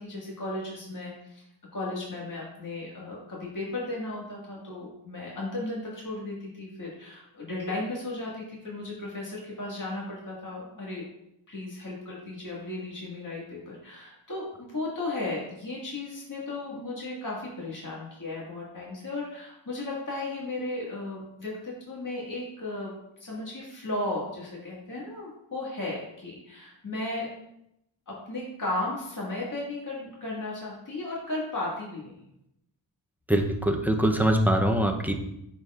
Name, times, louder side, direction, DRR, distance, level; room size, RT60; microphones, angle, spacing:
voice 1, 0.0-1.4 1.7-11.1 11.5-22.9 23.2-27.3 28.1-32.2, left 2 dB, 40° left, -5 dB, 1.9 m, -35 dB
voice 2, 33.3-35.1, right 1 dB, 5° right, 3 dB, 0.7 m, -23 dB
9.2 x 4.1 x 2.5 m, 0.81 s
cardioid pair, 50°, 47 cm